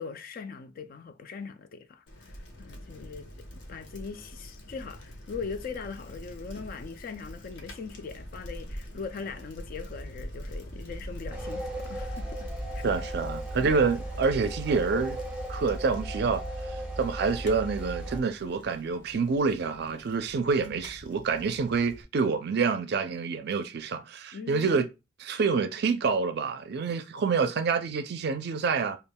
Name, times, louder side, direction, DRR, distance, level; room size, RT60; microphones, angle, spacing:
voice 1, 0.0-3.3 3.7-12.9 24.3-24.7, left 5 dB, 50° left, 0.4 m, -40 dB
Bicycle, 2.1-22.0, equal, 70° left, 0.8 m, -44 dB
sound 1, 11.3-18.2, right 1 dB, 5° right, 0.9 m, -36 dB
voice 2, 12.8-15.2 15.5-16.4 16.7-24.9 25.2-29.0, right 5 dB, 60° right, 0.4 m, -27 dB
5.1 x 2.3 x 2.2 m
head